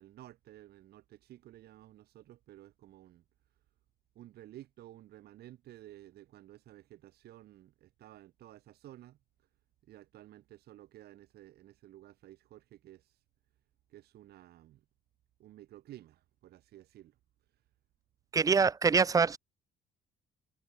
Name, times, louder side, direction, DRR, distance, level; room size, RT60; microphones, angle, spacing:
voice 1, 0.0-3.2 4.1-9.2 9.8-13.2 13.9-14.8 15.4-17.2, right 14 dB, 70° right, 4.2 m, -54 dB
voice 2, 18.3-19.4, right 5 dB, 20° right, 0.5 m, -25 dB
cardioid pair, 110°, 17 cm